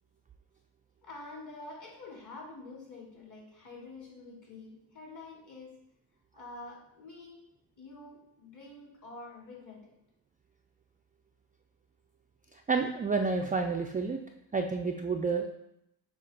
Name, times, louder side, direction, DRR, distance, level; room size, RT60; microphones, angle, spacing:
voice 1, 1.0-5.8 6.3-7.5 7.8-9.9, left 2 dB, 40° left, -3 dB, 2.4 m, -47 dB
voice 2, 12.5-14.2 14.5-15.5, right 4 dB, 20° right, 3 dB, 0.3 m, -30 dB
6.7 x 2.9 x 5.3 m, 0.80 s
cardioid pair, 95°, 45 cm